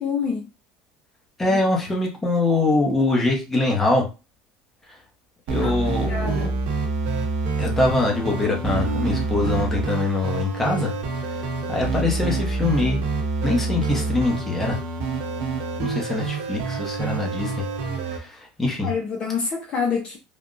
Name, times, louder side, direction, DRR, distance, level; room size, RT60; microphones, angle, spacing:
voice 1, 0.0-0.5 1.5-1.6 5.6-5.8 6.1-6.6 18.8-20.2, left 5 dB, 35° left, 0.6 m, -27 dB
voice 2, 1.4-4.0 5.5-6.5 7.6-10.9 11.3-11.4 11.7-13.0 13.4-14.8 15.8-17.6 18.1-18.9, left 2 dB, 10° left, 0.9 m, -23 dB
sound 1, 5.5-18.2, right 3 dB, 60° right, 0.8 m, -27 dB
3.4 x 2.2 x 2.5 m
cardioid pair, 135°, 3 cm